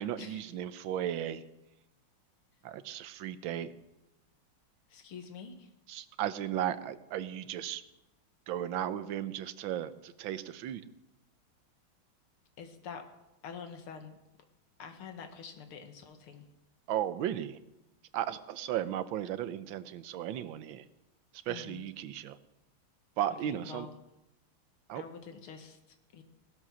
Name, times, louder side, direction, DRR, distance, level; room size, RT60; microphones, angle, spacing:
voice 1, 0.0-1.4 2.6-3.7 5.9-7.8 8.5-10.8 16.9-17.6 18.1-20.8 21.4-22.4 23.2-23.9 24.9-25.0, right 11 dB, 70° right, 12 dB, 1.5 m, -35 dB
voice 2, 4.9-5.7 12.6-13.1 13.4-14.2 14.8-16.5 21.5-21.8 23.5-24.0 25.0-26.2, left 6 dB, 80° left, 7 dB, 2.5 m, -46 dB
17.5 x 12.5 x 6.2 m, 0.93 s
omnidirectional pair, 2.3 m